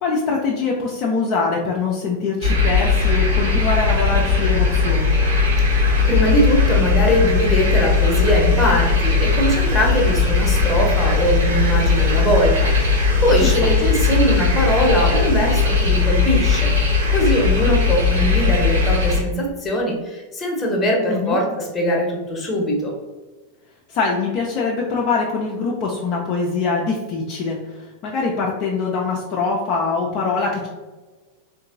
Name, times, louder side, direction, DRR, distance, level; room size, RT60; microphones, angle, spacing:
voice 1, 0.0-5.1 13.4-13.7 21.1-21.4 23.9-30.7, left 4 dB, 40° left, -2 dB, 0.5 m, -23 dB
sound 1, 2.4-19.2, left 4 dB, 70° right, 1.5 m, -18 dB
voice 2, 6.0-22.9, equal, 15° left, -1 dB, 0.9 m, -21 dB
3.7 x 2.6 x 2.5 m, 1.3 s
figure-of-eight pair, 90°, 0 cm